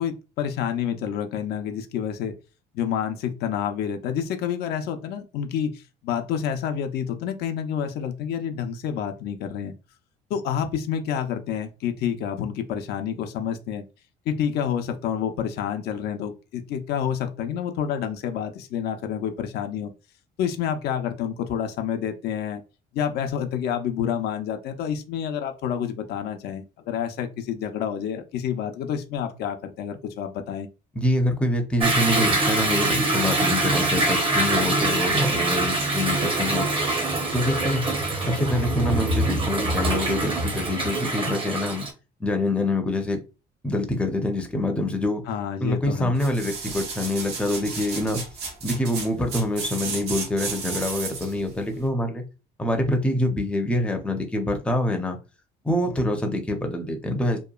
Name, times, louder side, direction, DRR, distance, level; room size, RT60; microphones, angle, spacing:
voice 1, 0.0-2.3 2.7-9.7 10.3-13.8 14.3-19.9 20.4-22.6 22.9-30.7 45.3-46.1, left 8 dB, 75° left, 7 dB, 0.4 m, -28 dB
voice 2, 31.0-36.7 37.3-37.8 38.3-41.9 42.2-43.2 43.6-45.2 45.6-48.2 48.6-52.2 52.6-55.2 55.6-57.4, left 1 dB, 5° left, 4 dB, 0.5 m, -25 dB
Toilet flush / Drip / Trickle dribble, 31.8-41.9, right 2 dB, 30° right, 0.7 m, -24 dB
sound 1, 46.2-51.4 51.9-52.0, right 5 dB, 75° right, 0.8 m, -33 dB
2.8 x 2.2 x 2.3 m, 0.30 s
cardioid pair, 110°, 17 cm